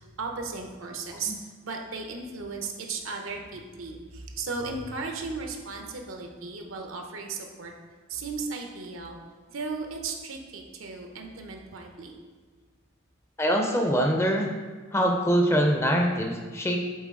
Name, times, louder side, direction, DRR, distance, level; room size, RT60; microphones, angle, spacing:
voice 1, 0.0-1.3 1.6-7.7 8.1-9.2 9.5-12.2, right 4 dB, 80° right, 3 dB, 0.8 m, -36 dB
voice 2, 13.4-14.5 14.9-16.8, equal, 10° left, 2 dB, 0.4 m, -23 dB
7.3 x 4.0 x 3.7 m, 1.4 s
head